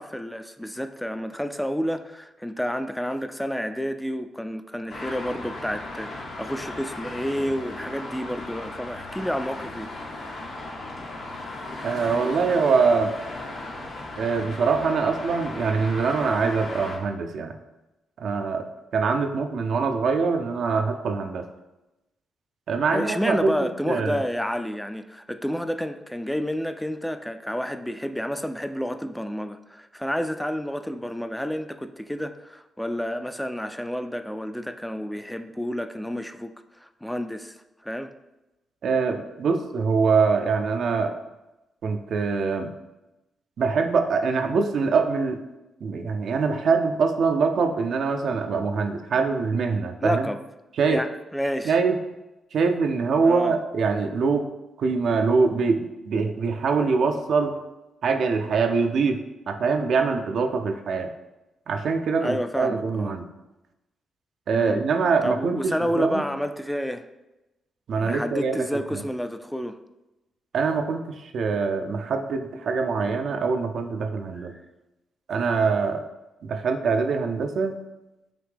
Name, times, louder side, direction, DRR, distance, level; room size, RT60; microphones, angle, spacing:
voice 1, 0.0-9.9 22.9-37.6 37.8-38.1 50.0-50.4 50.9-51.7 53.2-53.6 62.2-63.1 64.5-64.8 65.2-67.1 67.9-69.8 74.3-74.4, equal, 5° left, 9 dB, 0.3 m, -30 dB
Traffic noise roadway noise, 4.9-17.0, left 2 dB, 70° left, 1.0 m, -36 dB
voice 2, 11.8-13.1 14.2-17.6 18.2-18.6 18.9-21.5 22.7-23.6 23.9-24.2 38.8-41.1 41.8-42.7 43.6-45.4 45.8-50.3 50.8-51.0 51.6-52.0 52.5-54.5 54.8-57.6 58.0-61.1 61.7-63.2 64.5-66.2 67.9-68.7 68.9-69.0 70.5-74.5 75.3-76.0 76.4-77.8, right 4 dB, 70° right, 6 dB, 0.4 m, -24 dB
5.1 x 2.8 x 3.3 m, 0.99 s
supercardioid pair, 50°, 0 cm